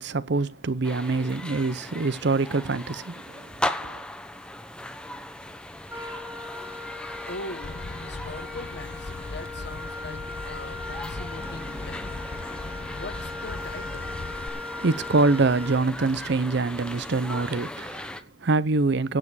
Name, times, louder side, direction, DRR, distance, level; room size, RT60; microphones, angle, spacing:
voice 1, 0.0-3.5 3.8-4.0 14.8-19.2, right 3 dB, 55° right, 0.6 m, -25 dB
sound 1, 0.8-18.2, left 1 dB, 5° left, 1.0 m, -38 dB
Wind instrument woodwind instrument, 5.9-16.3, left 2 dB, 10° right, 1.6 m, -39 dB
voice 2, 7.2-12.2 12.9-14.2, left 2 dB, 55° left, 1.5 m, -41 dB
sound 2, 7.6-14.5, left 2 dB, 75° left, 1.0 m, -39 dB
17.0 x 7.7 x 4.8 m
head